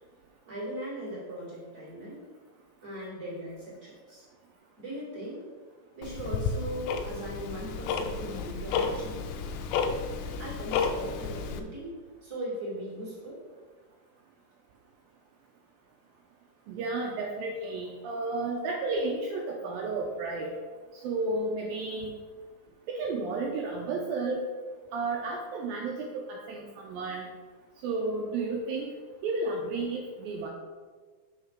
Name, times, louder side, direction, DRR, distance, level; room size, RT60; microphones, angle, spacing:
voice 1, 0.5-2.2 2.8-4.2 4.8-5.4 5.9-9.2 10.4-11.9 12.2-13.4, equal, 30° right, -7 dB, 1.8 m, -39 dB
Tick-tock, 6.0-11.6, left 5 dB, 90° left, 2.9 m, -32 dB
voice 2, 16.7-20.5 20.9-22.1 22.9-24.4 24.9-27.2 27.8-28.9 29.2-30.5, right 3 dB, 85° right, 0 dB, 2.0 m, -32 dB
6.4 x 5.7 x 4.7 m, 1.5 s
omnidirectional pair, 5.0 m